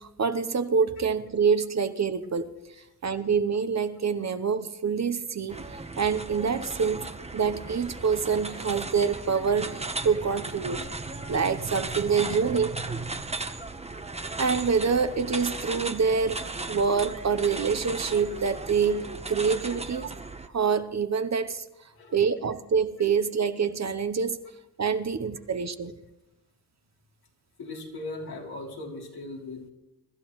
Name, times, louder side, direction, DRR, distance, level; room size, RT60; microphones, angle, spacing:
voice 1, 0.0-2.5 3.0-7.1 7.3-10.9 11.3-13.1 14.4-20.1 20.5-21.6 22.1-24.4 24.8-25.9, right 6 dB, 45° right, 10 dB, 0.9 m, -26 dB
sound 1, 5.5-20.5, right 3 dB, 15° right, 1.0 m, -37 dB
voice 2, 27.6-29.7, left 2 dB, 75° left, -2 dB, 3.3 m, -38 dB
24.0 x 12.0 x 3.1 m, 0.94 s
cardioid pair, 60°, 38 cm